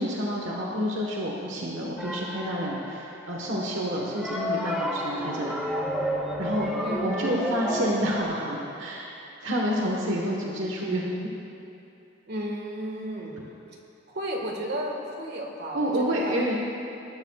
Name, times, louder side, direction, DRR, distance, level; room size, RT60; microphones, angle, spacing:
voice 1, 0.0-5.6 6.4-6.7 7.0-9.1 9.4-11.1 15.7-16.6, equal, 75° right, -2 dB, 1.4 m, -28 dB
sound 1, 2.0-3.3 3.9-8.2, equal, ahead, 1.0 m, -31 dB
voice 2, 6.8-7.3 12.3-13.5 14.1-16.6, right 1 dB, 55° right, 0 dB, 1.7 m, -34 dB
19.5 x 12.0 x 2.4 m, 2.9 s
head